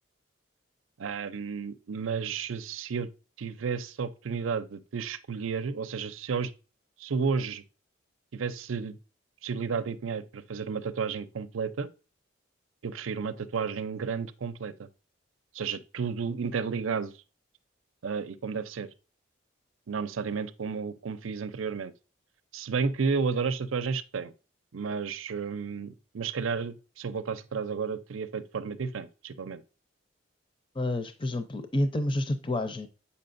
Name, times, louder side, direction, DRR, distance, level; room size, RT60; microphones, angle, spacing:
voice 1, 1.0-3.1 3.4-6.5 7.0-7.6 8.3-9.0 9.4-11.9 12.8-14.9 15.5-17.1 18.0-18.9 19.9-21.9 22.5-24.3 24.7-29.6, right 5 dB, 85° right, 0.5 m, -32 dB
voice 2, 30.8-32.9, left 1 dB, 25° left, 0.5 m, -29 dB
7.7 x 5.6 x 2.5 m
head